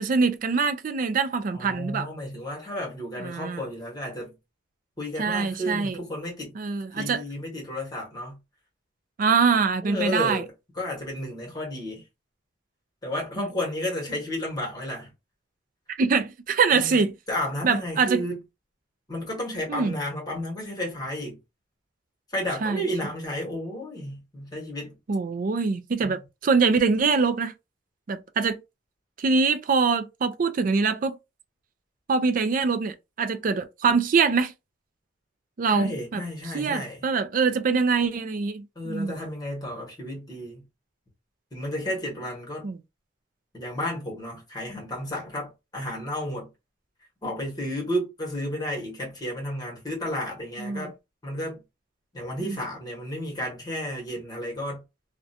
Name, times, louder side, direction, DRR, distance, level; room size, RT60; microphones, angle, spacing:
voice 1, 0.0-2.1 3.2-3.6 5.2-6.0 6.6-7.2 9.2-10.4 13.4-13.5 15.9-17.1 17.6-18.2 19.7-19.9 22.6-22.8 25.1-27.5 28.1-28.6 29.2-31.2 32.1-34.5 35.6-36.2 36.5-39.1 42.6-42.8 50.6-50.9 52.4-52.6, right 4 dB, 40° right, 0.3 m, -24 dB
voice 2, 1.5-4.3 5.0-6.6 7.0-8.4 9.8-12.0 13.0-15.1 16.7-17.0 17.3-18.4 19.1-21.4 22.3-24.9 26.0-26.2 35.7-37.0 38.7-40.6 41.5-42.7 43.5-46.5 47.2-50.9 51.2-51.6 52.1-54.8, left 1 dB, 20° left, 1.2 m, -32 dB
2.5 x 2.2 x 2.6 m
head